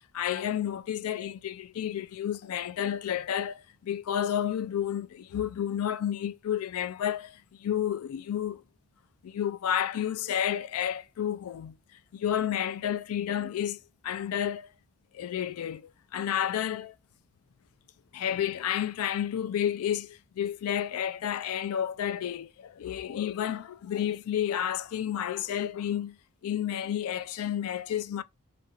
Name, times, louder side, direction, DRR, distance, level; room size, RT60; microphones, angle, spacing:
voice 1, 0.0-8.6 9.2-11.8 12.1-14.7 15.1-17.0 18.1-26.2 26.4-28.2, left 10 dB, 80° left, 0.3 m, -31 dB
2.7 x 2.5 x 4.3 m
head